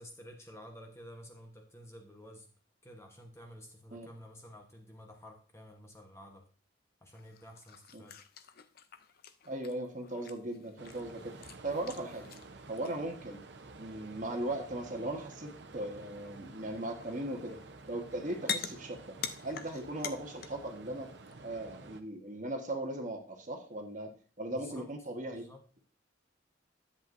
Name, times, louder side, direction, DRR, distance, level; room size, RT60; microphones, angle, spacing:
voice 1, 0.0-2.5 2.8-6.5 7.0-8.2 24.5-24.9 25.2-25.7, equal, 15° left, 3 dB, 1.1 m, -51 dB
sound 1, 7.1-13.7 14.6-15.1 15.3-16.5 17.0-17.9 18.2-20.7 21.0-21.3, left 7 dB, 50° left, 0.5 m, -45 dB
voice 2, 9.4-11.3 11.6-12.2 12.7-13.4 13.8-17.6 17.9-19.2 19.4-21.1 21.4-24.1 24.4-25.4, right 1 dB, 40° right, 3 dB, 1.3 m, -38 dB
sound 2, 10.8-22.0, right 3 dB, 60° right, 0.8 m, -51 dB
10.5 x 7.9 x 2.6 m, 0.39 s
head